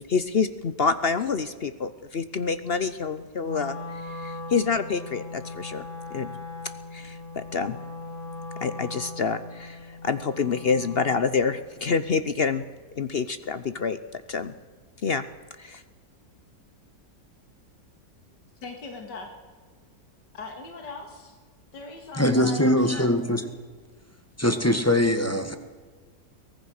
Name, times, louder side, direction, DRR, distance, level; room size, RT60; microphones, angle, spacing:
voice 1, 0.0-5.8 6.1-6.3 6.9-7.8 8.6-12.6 13.0-14.5 15.0-15.2 15.6-15.8, left 5 dB, 50° left, 12 dB, 0.7 m, -27 dB
Wind instrument woodwind instrument, 3.4-11.4, left 2 dB, 35° left, 7.7 m, -39 dB
voice 2, 18.6-19.3 20.3-21.4 21.7-22.7 22.9-23.1, left 3 dB, 90° left, 4 dB, 2.5 m, -39 dB
voice 3, 22.2-23.5 24.4-25.6, left 1 dB, 10° left, 7 dB, 1.4 m, -22 dB
23.5 x 18.5 x 6.6 m, 1.5 s
omnidirectional pair, 1.8 m